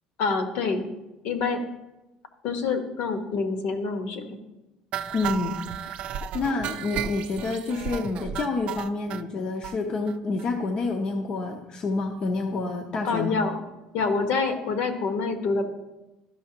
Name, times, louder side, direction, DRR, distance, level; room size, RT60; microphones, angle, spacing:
voice 1, 0.2-0.9 1.2-1.6 2.4-4.3 13.0-13.6 13.9-15.6, left 4 dB, 70° left, 6 dB, 1.3 m, -26 dB
sound 1, 4.9-9.2 9.6-9.8 10.1-10.2 10.4-10.5 10.8-10.9, right 9 dB, 55° right, 0.5 m, -34 dB
voice 2, 5.1-5.9 6.3-13.4, left 3 dB, 40° left, 4 dB, 0.7 m, -28 dB
13.0 x 5.5 x 2.9 m, 1.0 s
cardioid pair, 135°, 2 cm